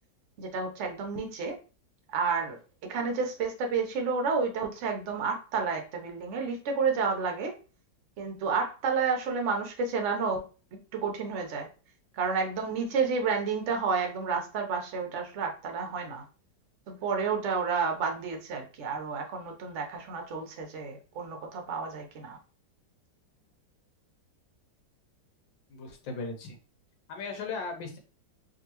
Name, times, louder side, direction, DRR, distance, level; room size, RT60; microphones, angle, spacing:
voice 1, 0.4-1.6 2.1-2.6 2.9-7.5 8.2-10.4 10.9-11.7 12.1-16.2 16.9-22.4, right 5 dB, 60° right, 3 dB, 0.8 m, -30 dB
voice 2, 25.7-26.6 27.1-28.0, left 4 dB, 85° left, 4 dB, 1.5 m, -37 dB
3.5 x 2.6 x 2.9 m, 0.35 s
omnidirectional pair, 2.0 m